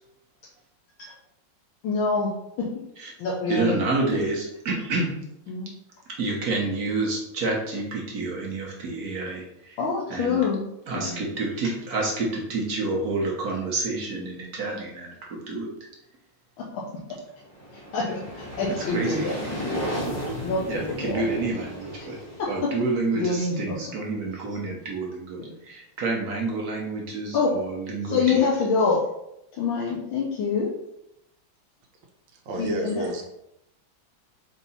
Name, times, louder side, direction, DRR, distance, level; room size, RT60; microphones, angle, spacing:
voice 1, 1.8-2.3 2.6-2.7 3.2-3.8 5.5-5.7 9.8-10.6 11.0-11.2 16.7-16.8 17.9-19.3 19.9-20.0 20.4-21.2 22.4-22.5 23.2-23.7 27.3-27.6 28.1-29.0 29.6-30.7 32.6-33.1, left 4 dB, 85° left, -5 dB, 1.6 m, -25 dB
voice 2, 3.5-5.1 6.1-9.8 10.1-10.4 10.9-15.7 18.9-19.3 20.0-20.4 20.7-22.2 22.5-28.5, right 3 dB, 60° right, -1 dB, 1.2 m, -29 dB
sound 1, 17.3-24.1, equal, 10° left, 1.1 m, -35 dB
voice 3, 32.5-33.2, equal, 80° right, 2 dB, 1.5 m, -29 dB
4.6 x 2.7 x 4.1 m, 0.82 s
omnidirectional pair, 2.1 m